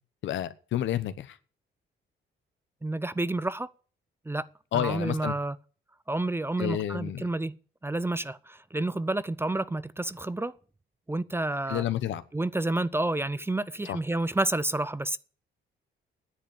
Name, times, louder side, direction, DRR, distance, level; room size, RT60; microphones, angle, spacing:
voice 1, 0.2-1.4 4.7-5.3 6.6-7.3 11.7-12.2 13.9-14.0, left 11 dB, 70° left, 1.1 m, -30 dB
voice 2, 2.8-3.7 4.3-4.5 4.7-5.6 6.1-7.5 7.8-10.5 11.1-11.8 12.3-15.2, right 2 dB, 10° right, 0.5 m, -29 dB
10.0 x 7.9 x 8.8 m
cardioid pair, 90°, 20 cm